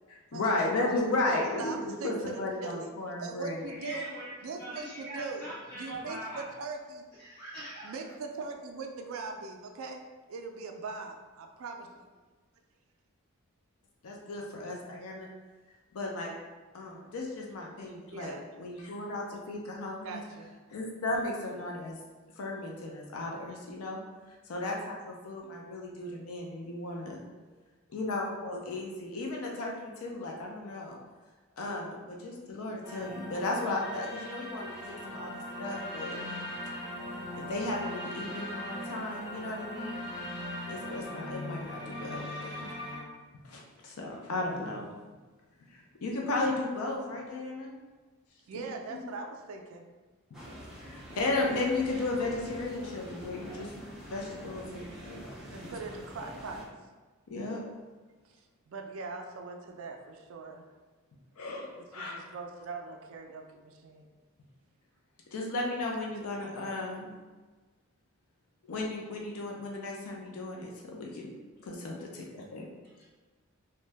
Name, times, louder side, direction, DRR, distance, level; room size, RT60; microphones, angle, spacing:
voice 1, 0.1-3.6 14.0-15.3 15.9-16.3 16.7-20.2 20.7-22.0 22.4-24.0 24.4-27.2 27.9-30.9 31.6-36.2 37.3-40.0 40.7-42.6 43.4-44.9 45.7-47.7 48.5-49.0 50.3-50.4 50.8-53.7 54.1-55.4 57.3-57.6 61.4-62.2 65.3-67.1 68.7-71.3 71.6-72.7, left 2 dB, 75° left, -1 dB, 0.4 m, -35 dB
voice 2, 1.6-2.9 3.2-4.1 4.4-5.4 5.7-7.0 7.8-10.0 10.3-12.0 18.1-18.5 20.0-20.5 28.5-28.6 48.5-50.0 55.5-56.7 58.7-60.7 62.0-64.1, right 4 dB, 65° right, 4 dB, 0.3 m, -41 dB
voice 3, 3.8-4.3 4.6-6.4 7.2-7.9, right 1 dB, 45° left, -10 dB, 1.3 m, -41 dB
sound 1, 32.8-43.0, left 1 dB, 20° left, 1.0 m, -39 dB
sound 2, 50.3-56.6, equal, ahead, 0.4 m, -45 dB
2.6 x 2.2 x 3.2 m, 1.3 s
head